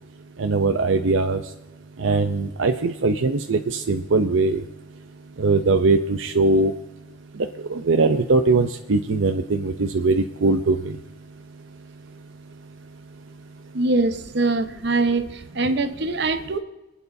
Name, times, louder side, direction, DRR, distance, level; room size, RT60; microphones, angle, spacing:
voice 1, 0.4-1.4 2.0-4.6 5.4-6.7 7.7-11.0, right 3 dB, 85° right, 6 dB, 0.6 m, -21 dB
voice 2, 13.7-15.2 15.5-16.6, right 2 dB, 60° right, 8 dB, 1.0 m, -22 dB
26.5 x 9.2 x 2.7 m, 1.0 s
head